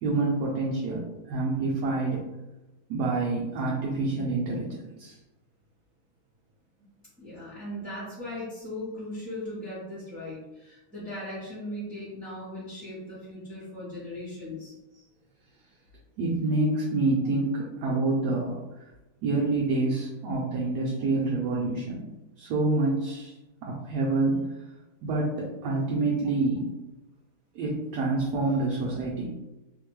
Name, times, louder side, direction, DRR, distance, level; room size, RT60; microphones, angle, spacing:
voice 1, 0.0-2.2 2.9-5.1 16.2-18.6 19.2-22.1 22.4-23.3 23.6-24.4 25.0-26.7 27.5-29.3, right 2 dB, 75° right, -4 dB, 1.1 m, -27 dB
voice 2, 7.2-14.7, left 1 dB, 10° right, -13 dB, 0.6 m, -38 dB
3.1 x 2.1 x 3.0 m, 0.99 s
omnidirectional pair, 1.8 m